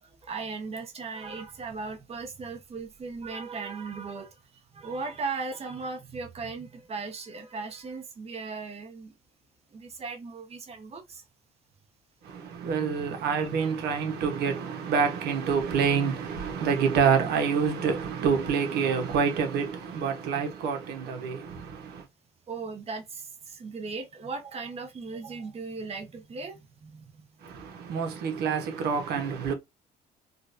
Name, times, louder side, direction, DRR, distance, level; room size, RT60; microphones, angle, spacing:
voice 1, 0.0-4.3 4.7-9.1 9.7-11.2 13.4-13.5 22.5-27.3, right 4 dB, 35° right, 1.0 m, -37 dB
voice 2, 12.2-22.0 27.4-29.5, right 6 dB, 75° right, 1.1 m, -27 dB
3.8 x 2.4 x 2.6 m
cardioid pair, 110°, 17 cm